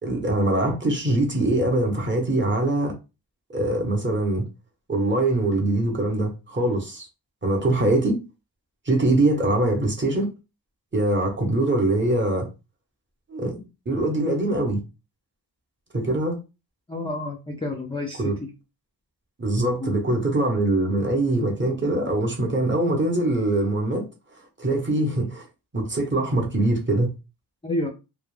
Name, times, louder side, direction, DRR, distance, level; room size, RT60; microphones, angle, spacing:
voice 1, 0.0-3.0 3.5-4.4 4.9-7.1 7.4-8.2 8.9-10.3 10.9-12.5 13.3-14.8 15.9-16.4 18.2-18.3 19.4-24.1 24.6-25.4 25.7-27.1, right 2 dB, 25° right, 0.8 m, -23 dB
voice 2, 16.9-18.5 19.8-19.9 27.6-27.9, left 2 dB, 10° left, 0.4 m, -29 dB
2.3 x 2.1 x 3.1 m
wide cardioid pair, 100°, 45 cm